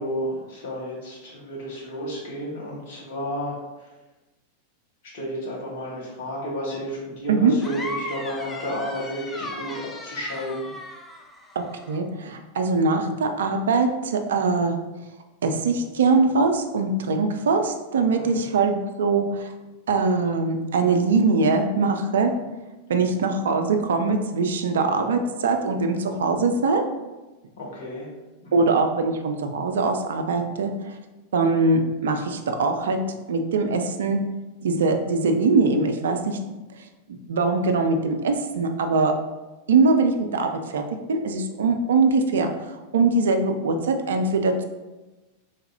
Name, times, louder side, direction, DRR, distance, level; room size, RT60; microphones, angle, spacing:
voice 1, 0.0-3.9 5.1-10.5 18.2-18.4 27.6-28.1 28.4-28.7, equal, 55° left, -4 dB, 1.4 m, -32 dB
sound 1, 7.6-12.0, left 1 dB, 15° left, 0.5 m, -37 dB
voice 2, 11.6-14.8 15.4-19.5 19.9-22.4 22.9-26.8 28.5-31.0 31.3-34.3 34.6-36.4 37.1-39.2 39.7-44.6, right 3 dB, 65° right, 6 dB, 0.4 m, -22 dB
3.9 x 3.2 x 2.8 m, 1.1 s
figure-of-eight pair, 90°, 0 cm